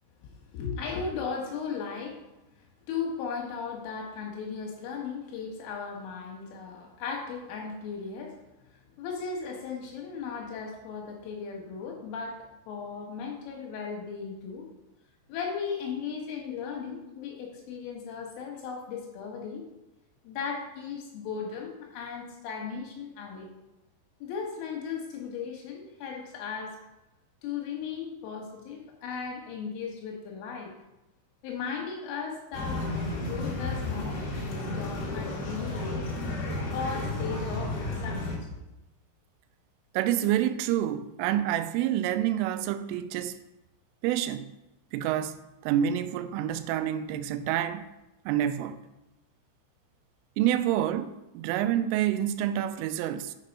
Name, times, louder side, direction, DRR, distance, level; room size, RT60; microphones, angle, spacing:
voice 1, 0.3-2.2 2.6-8.4 8.7-14.7 15.3-19.6 20.2-23.5 24.2-26.8 27.4-30.7 31.4-32.9 33.3-34.2 34.6-36.0 36.7-37.8 38.0-38.4, left 5 dB, 80° left, 4.0 m, -36 dB
sound 1, 32.5-38.4, left 2 dB, 60° left, 3.5 m, -32 dB
voice 2, 39.9-43.4 44.0-44.5 44.9-47.9 48.3-48.8 50.4-53.4, right 11 dB, 85° right, 3.1 m, -28 dB
6.7 x 6.5 x 5.3 m
omnidirectional pair, 5.7 m